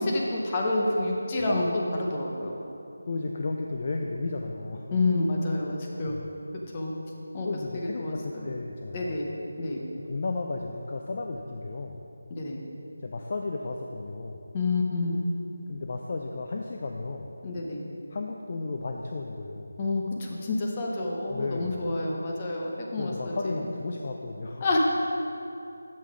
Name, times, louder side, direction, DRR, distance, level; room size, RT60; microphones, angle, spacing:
voice 1, 0.0-2.5 4.9-6.1 6.7-6.9 7.3-7.5 7.7-8.5 8.9-9.3 9.6-9.8 12.3-12.6 14.5-15.2 17.4-17.8 19.8-23.6 24.6-24.8, left 2 dB, 20° left, -2 dB, 0.7 m, -28 dB
voice 2, 3.1-5.0 6.0-6.3 7.4-9.2 9.9-12.0 13.0-14.4 15.7-17.3 18.1-19.7 21.3-21.9 23.0-24.7, left 3 dB, 35° left, 2 dB, 0.3 m, -34 dB
7.4 x 5.6 x 4.8 m, 2.9 s
figure-of-eight pair, 175°, 0 cm